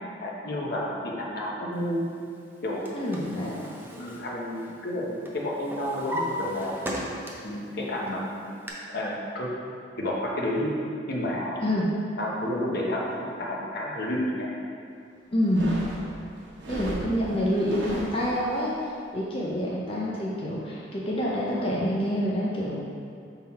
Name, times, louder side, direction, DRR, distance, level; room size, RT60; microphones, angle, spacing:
voice 1, 0.2-2.1 2.6-2.9 3.9-6.7 7.4-8.5 8.9-9.5 10.0-10.8 11.1-11.6 12.2-14.5, left 1 dB, 60° left, -3 dB, 1.0 m, -30 dB
Drawer open or close, 2.5-4.9 5.2-7.6 8.0-8.7, equal, 10° right, 0.6 m, -36 dB
voice 2, 2.9-3.6 11.6-11.9 15.3-15.8 16.7-18.7 19.1-22.8, equal, 30° left, -6 dB, 0.7 m, -27 dB
sound 1, 15.4-18.6, equal, 85° right, 1.1 m, -36 dB
5.9 x 3.9 x 4.2 m, 2.4 s
head